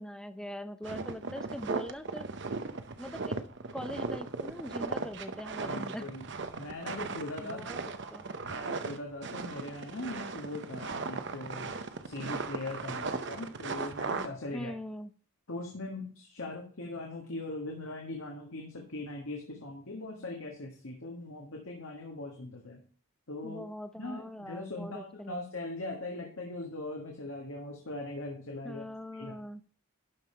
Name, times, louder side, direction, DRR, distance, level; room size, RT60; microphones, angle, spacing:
voice 1, 0.0-2.3 3.0-3.4 3.7-6.1 7.4-7.8 8.1-8.2 14.5-15.1 23.4-25.4 28.6-29.6, equal, 5° left, 10 dB, 0.5 m, -41 dB
sound 1, 0.8-14.3, right 4 dB, 55° right, 0.7 m, -37 dB
voice 2, 5.6-6.2 6.6-7.6 8.4-11.8 12.0-14.7 15.5-22.8 23.3-23.6 23.9-28.8 29.1-29.4, left 2 dB, 70° left, 0 dB, 1.7 m, -40 dB
12.0 x 5.4 x 4.4 m, 0.42 s
head